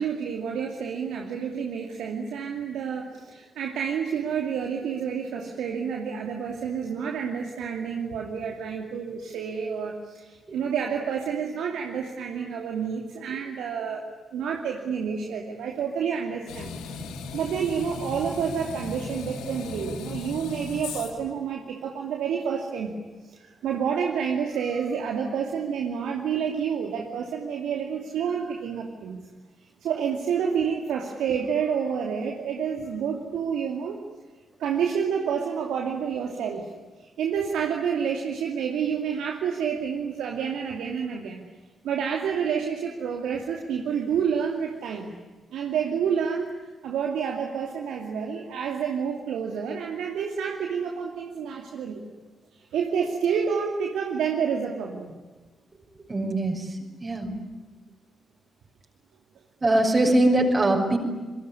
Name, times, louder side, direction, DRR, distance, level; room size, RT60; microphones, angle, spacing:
voice 1, 0.0-14.1 14.3-16.8 17.3-22.9 23.2-29.2 29.8-34.0 34.6-36.7 37.2-41.4 41.8-45.1 45.5-46.5 46.8-52.0 52.7-55.1, right 7 dB, 75° right, 1 dB, 2.6 m, -29 dB
sound 1, 16.5-21.3, left 4 dB, 80° left, 2.4 m, -37 dB
voice 2, 56.1-56.7 57.0-57.3 59.6-61.0, right 1 dB, 35° right, 1 dB, 6.3 m, -21 dB
27.0 x 22.0 x 9.9 m, 1.3 s
hypercardioid pair, 40°, 0 cm